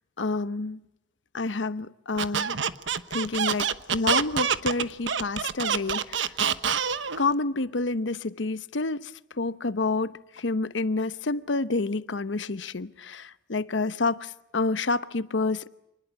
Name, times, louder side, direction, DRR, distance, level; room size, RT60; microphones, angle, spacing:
voice 1, 0.2-0.8 1.3-2.6 3.1-6.3 7.2-15.7, left 3 dB, 80° left, 0.9 m, -29 dB
Squeak, 2.2-7.2, right 7 dB, 85° right, 1.1 m, -26 dB
27.5 x 20.5 x 8.1 m
head